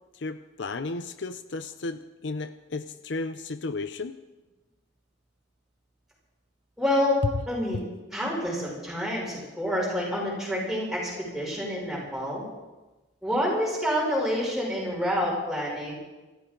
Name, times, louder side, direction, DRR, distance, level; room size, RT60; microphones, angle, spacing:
voice 1, 0.1-4.1, left 3 dB, 65° left, 10 dB, 0.6 m, -34 dB
voice 2, 6.8-7.2 7.5-7.8 8.1-12.5 13.2-15.9, equal, ahead, -4 dB, 6.1 m, -28 dB
26.5 x 13.5 x 3.9 m, 1.1 s
head